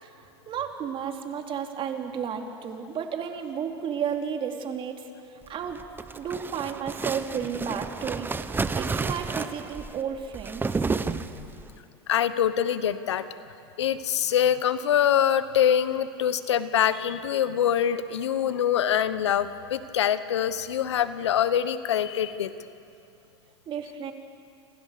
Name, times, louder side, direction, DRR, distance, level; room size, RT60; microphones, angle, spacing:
voice 1, 0.0-5.1 5.5-5.8 6.1-8.3 8.7-10.8 23.7-24.1, right 7 dB, 35° right, 3 dB, 3.4 m, -32 dB
sound 1, 5.7-11.7, right 4 dB, 15° right, 1.1 m, -31 dB
voice 2, 12.1-13.3 13.8-22.5, left 9 dB, 85° left, 13 dB, 1.2 m, -24 dB
28.0 x 27.0 x 6.9 m, 2.7 s
hypercardioid pair, 100°, 14 cm